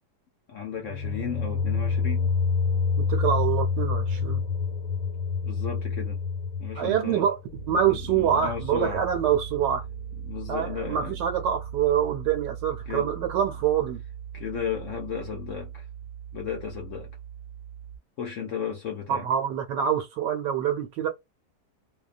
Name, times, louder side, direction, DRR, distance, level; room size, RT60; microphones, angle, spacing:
voice 1, 0.5-2.3 5.4-6.2 6.6-7.3 7.8-9.0 10.2-11.2 12.9-13.1 14.3-15.9 16.3-17.1 18.2-19.3, left 7 dB, 65° left, 0.8 m, -34 dB
sound 1, 0.8-9.7, left 5 dB, 90° left, 1.2 m, -28 dB
voice 2, 3.0-4.4 6.8-7.4 7.7-9.8 10.5-14.0 19.1-21.1, right 9 dB, 80° right, 1.2 m, -25 dB
sound 2, 7.5-18.0, right 9 dB, 40° left, 0.4 m, -39 dB
2.7 x 2.2 x 2.4 m
omnidirectional pair, 1.8 m